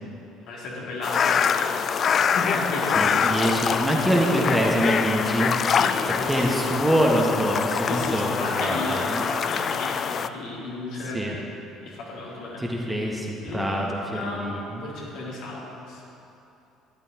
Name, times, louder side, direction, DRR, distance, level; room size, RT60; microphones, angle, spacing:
voice 1, 0.5-1.8 2.1-3.3 4.0-4.4 5.6-6.7 7.9-11.4 11.8-12.7 13.4-13.8 14.1-14.5 14.8-16.0, left 2 dB, 60° left, -5 dB, 2.6 m, -33 dB
sound 1, 1.0-10.3, left 7 dB, 45° left, 0.3 m, -25 dB
voice 2, 2.9-5.5 6.3-9.2 11.1-11.4 12.6-14.8, right 1 dB, 5° right, -1 dB, 1.5 m, -25 dB
13.0 x 10.5 x 3.0 m, 2.9 s
figure-of-eight pair, 55°, 0 cm